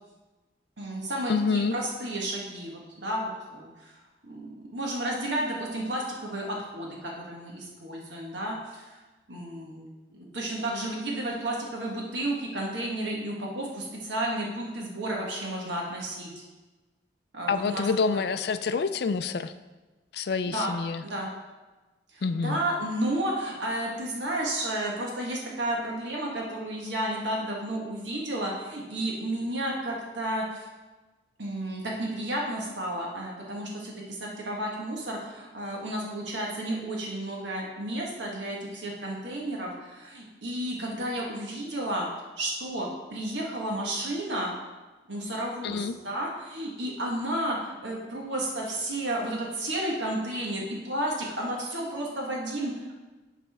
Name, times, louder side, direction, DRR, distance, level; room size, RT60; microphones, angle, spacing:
voice 1, 0.8-3.9 4.3-8.9 9.3-9.9 10.1-16.3 17.3-18.2 20.5-20.7 21.0-21.3 22.1-30.7 31.4-42.1 42.4-44.5 45.1-52.9, right 1 dB, 80° right, -2 dB, 1.4 m, -32 dB
voice 2, 1.3-1.8 17.5-19.5 20.1-21.0 22.2-22.6 45.6-45.9, left 4 dB, 60° left, 11 dB, 0.4 m, -27 dB
12.0 x 4.2 x 3.5 m, 1.2 s
head